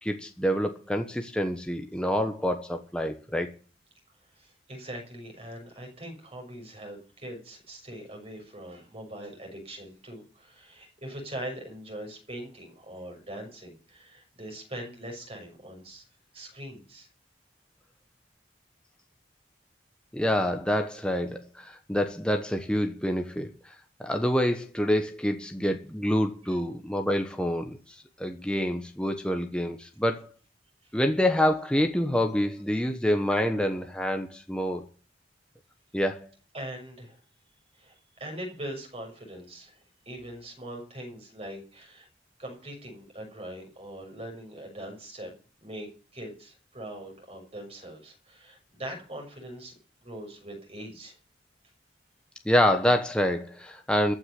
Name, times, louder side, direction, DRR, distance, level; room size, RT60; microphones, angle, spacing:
voice 1, 0.0-3.5 20.1-23.7 24.0-27.8 28.2-30.3 30.9-34.8 35.9-36.3 52.4-54.1, equal, 5° left, 1.1 m, -27 dB
voice 2, 4.3-16.0 16.3-17.1 26.4-26.6 30.8-30.9 32.7-32.8 36.5-37.2 37.7-42.1 42.4-45.3 45.6-49.7 50.0-51.2, right 1 dB, 35° right, 6.6 m, -42 dB
14.5 x 6.5 x 9.8 m
head